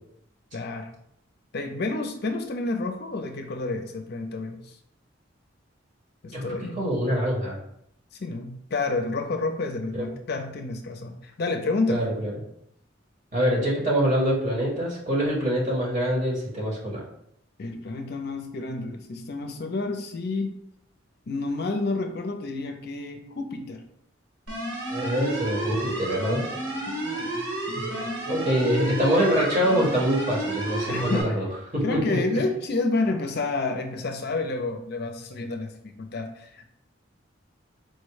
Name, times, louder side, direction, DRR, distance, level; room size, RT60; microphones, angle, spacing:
voice 1, 0.5-0.9 1.5-4.7 6.2-6.8 8.2-12.1 17.6-20.6 21.3-23.8 26.9-28.1 30.9-31.4 31.8-36.7, left 3 dB, 55° left, 5 dB, 0.5 m, -30 dB
voice 2, 6.3-7.6 9.9-10.1 11.9-12.3 13.3-17.0 24.9-26.4 27.7-27.8 28.3-31.5 31.7-32.2, equal, 40° right, -4 dB, 1.6 m, -25 dB
sound 1, 24.5-31.2, right 1 dB, 85° right, 1.5 m, -31 dB
4.5 x 2.2 x 4.7 m, 0.73 s
head